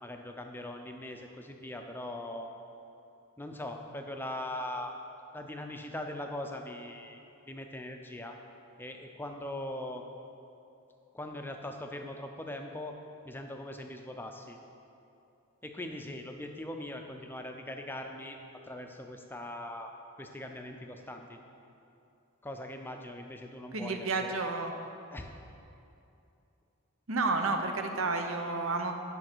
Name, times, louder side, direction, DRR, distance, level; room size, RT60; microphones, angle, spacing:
voice 1, 0.0-2.5 3.4-4.9 5.3-8.4 8.8-10.0 11.1-13.0 13.2-14.6 15.6-18.4 18.7-19.9 20.2-21.4 22.4-24.3 25.1-25.3, left 1 dB, 10° left, 4 dB, 0.5 m, -41 dB
voice 2, 23.7-24.7 27.1-28.9, right 3 dB, 65° right, 5 dB, 0.8 m, -31 dB
10.5 x 5.8 x 6.1 m, 2.7 s
head